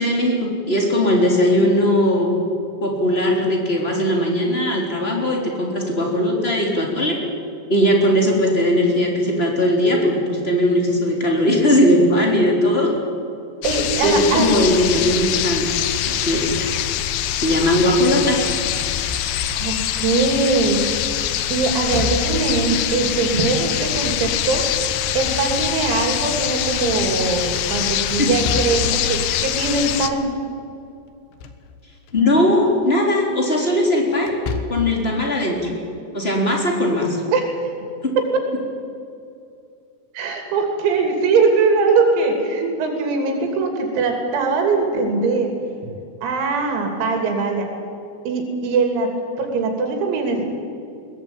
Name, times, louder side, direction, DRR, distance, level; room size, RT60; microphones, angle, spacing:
voice 1, 0.0-2.4 2.8-7.2 7.7-12.9 14.0-16.7 17.4-18.4 28.2-28.3 32.1-34.3 34.7-35.6 36.1-37.2 38.0-38.1, left 1 dB, 15° left, 0 dB, 3.2 m, -19 dB
sound 1, 13.6-30.1, left 11 dB, 85° left, 2.2 m, -24 dB
voice 2, 13.6-14.5 19.6-20.8 21.5-24.6 25.1-30.3 37.3-37.5 40.2-45.5 46.2-47.7 48.3-49.1 49.4-50.4, right 4 dB, 85° right, 3 dB, 5.6 m, -21 dB
Slam / Thump thud, 18.8-19.7 21.7-22.6 24.9-25.9 28.2-29.0 31.1-31.7 32.1-32.2 34.2-35.0, left 4 dB, 70° left, 3.5 m, -30 dB
21.5 x 20.5 x 9.1 m, 2.5 s
omnidirectional pair, 6.0 m